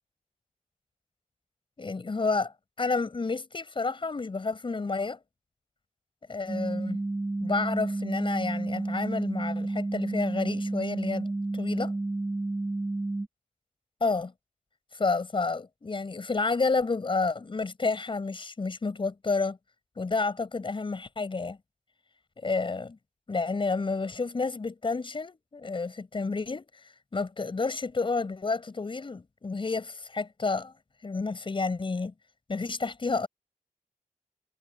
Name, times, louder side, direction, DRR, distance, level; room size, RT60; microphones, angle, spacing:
voice 1, 1.8-5.2 6.3-7.0 7.4-11.3 11.5-11.9 14.0-14.3 14.9-19.6 20.0-21.6 22.4-23.0 23.3-30.7 31.0-32.1 32.5-33.3, left 4 dB, 35° left, 6.6 m, -30 dB
sound 1, 6.5-13.3, right 2 dB, 15° right, 2.1 m, -31 dB
wide cardioid pair, 110°, 14 cm